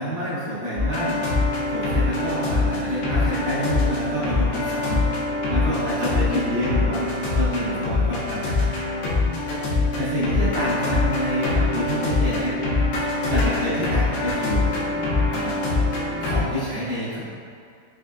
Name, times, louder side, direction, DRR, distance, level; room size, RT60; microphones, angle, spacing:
voice 1, 0.0-5.0 5.5-9.1 9.4-9.7 10.0-12.6 13.3-14.7 15.3-15.9 16.2-17.2, equal, 70° right, -11 dB, 2.4 m, -28 dB
sound 1, 0.8-16.4, left 3 dB, 80° left, 2.6 m, -24 dB
6.3 x 2.5 x 2.3 m, 2.3 s
omnidirectional pair, 4.7 m